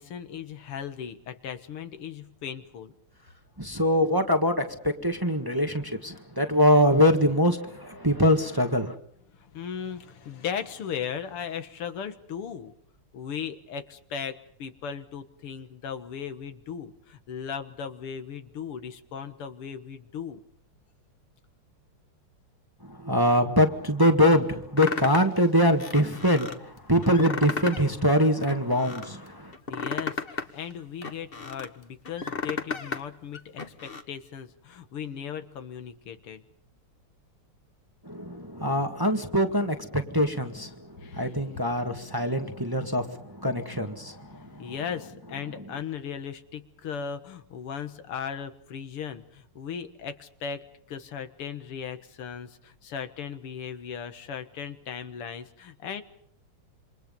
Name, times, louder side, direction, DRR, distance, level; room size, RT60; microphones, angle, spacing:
voice 1, 0.0-2.9 9.4-12.7 13.1-20.4 29.7-36.4 41.0-41.3 44.3-56.0, left 7 dB, 85° left, 10 dB, 2.5 m, -37 dB
voice 2, 3.6-8.9 22.8-29.5 38.0-44.7, equal, 10° right, 5 dB, 1.6 m, -24 dB
sound 1, 24.8-25.4 25.8-26.6 27.0-27.9 28.2-29.1 29.5-31.7 32.1-33.0 33.3-34.0, left 4 dB, 30° left, 1.4 m, -34 dB
28.0 x 25.5 x 5.4 m, 0.68 s
omnidirectional pair, 2.4 m